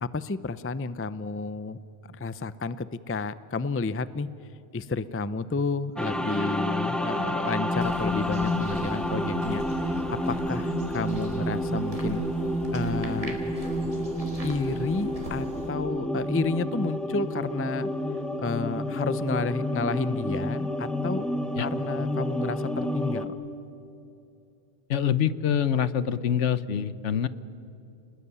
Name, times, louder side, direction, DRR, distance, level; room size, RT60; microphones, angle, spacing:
voice 1, 0.0-1.8 2.1-4.3 4.7-12.2 12.7-13.4 14.4-17.9 18.4-21.3 21.6-23.3, left 3 dB, 20° left, 15 dB, 0.4 m, -31 dB
sound 1, 6.0-23.3, left 1 dB, ahead, 1.3 m, -29 dB
sound 2, 7.7-15.7, right 1 dB, 30° right, 3.6 m, -42 dB
voice 2, 24.9-27.3, left 8 dB, 75° left, 15 dB, 1.2 m, -25 dB
29.5 x 20.0 x 9.8 m, 2.7 s
omnidirectional pair, 1.3 m